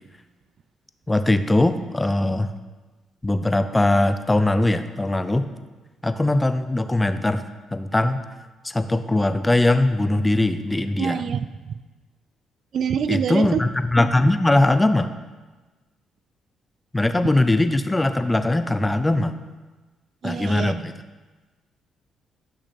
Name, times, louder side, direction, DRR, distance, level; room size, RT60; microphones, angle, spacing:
voice 1, 1.1-2.5 3.2-5.5 6.0-7.4 7.7-8.2 8.6-11.2 13.1-15.1 16.9-19.3 20.2-20.9, left 2 dB, 15° left, 10 dB, 0.6 m, -20 dB
voice 2, 11.0-11.8 12.7-13.6 20.2-20.7, right 7 dB, 60° right, 12 dB, 0.4 m, -25 dB
11.5 x 6.1 x 4.3 m, 1.2 s
cardioid pair, 90°, 0 cm